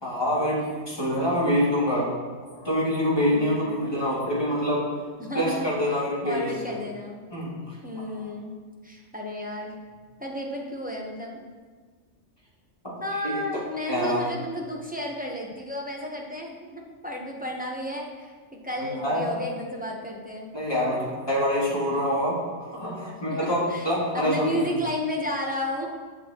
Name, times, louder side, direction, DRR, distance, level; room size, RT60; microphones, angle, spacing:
voice 1, 0.0-2.1 2.6-4.9 5.3-6.7 7.3-7.7 12.8-13.0 13.2-13.3 13.9-14.2 18.8-19.3 20.5-22.5 22.7-24.7, equal, 20° left, -7 dB, 2.1 m, -26 dB
voice 2, 3.2-3.8 5.2-5.7 6.2-7.2 7.8-8.5 8.8-9.8 10.2-11.4 13.0-20.5 23.2-25.9, left 1 dB, 10° right, -2 dB, 0.8 m, -32 dB
7.8 x 7.2 x 2.9 m, 1.5 s
omnidirectional pair, 1.3 m